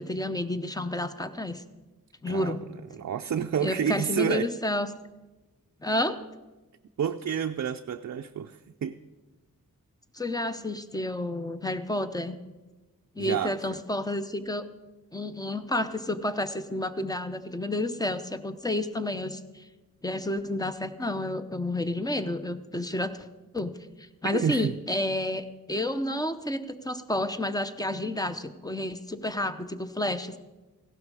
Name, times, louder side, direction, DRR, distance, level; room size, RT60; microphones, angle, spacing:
voice 1, 0.0-1.6 2.2-2.6 3.6-4.9 5.8-6.2 10.1-12.4 13.2-14.6 15.1-19.6 20.0-23.3 23.5-23.7 24.0-30.4, left 1 dB, 10° left, 10 dB, 0.7 m, -30 dB
voice 2, 2.9-4.5 7.0-9.0 13.2-13.8 24.2-24.7, right 8 dB, 50° right, 6 dB, 0.5 m, -29 dB
16.0 x 12.0 x 4.8 m, 1.1 s
wide cardioid pair, 110°, 35 cm